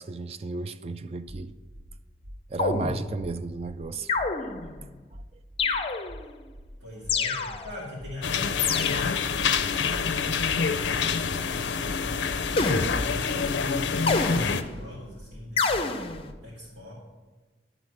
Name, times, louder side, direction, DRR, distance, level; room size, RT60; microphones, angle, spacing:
voice 1, 0.0-1.5 2.5-4.1 4.4-4.8 5.1-5.2 5.6-5.8, right 3 dB, 35° right, 0.3 m, -34 dB
sound 1, 1.3-1.4 1.7-1.9 2.2-2.4 2.7-2.9 3.2-3.3 3.7-3.8 4.1-4.3 4.6-4.8 5.1-5.3 5.6-5.7 6.1-6.2 6.5-6.7 7.0-7.2 7.5-7.7 8.0-8.1 8.5-8.6 8.9-9.1 9.4-9.6 9.9-10.1 10.4-10.5 10.9-11.0 11.3-11.5 11.8-12.0 12.3-12.5 12.8-12.9 13.3-13.4 13.7-13.9 14.2-14.4 14.7-14.9 15.2-15.3 15.7-15.8 16.1-16.3, equal, 50° right, 0.8 m, -44 dB
sound 2, 2.6-3.4 4.1-4.8 5.6-6.3 7.1-7.9 8.6-9.3 12.6-13.3 14.1-14.9 15.6-16.3, left 4 dB, 30° left, 0.5 m, -28 dB
voice 2, 6.8-9.8 10.3-12.2 12.5-16.1 16.4-16.9, left 1 dB, 85° right, 2.4 m, -41 dB
sound 3, 8.2-14.6, left 6 dB, 85° left, 0.5 m, -27 dB
11.0 x 3.9 x 6.4 m
head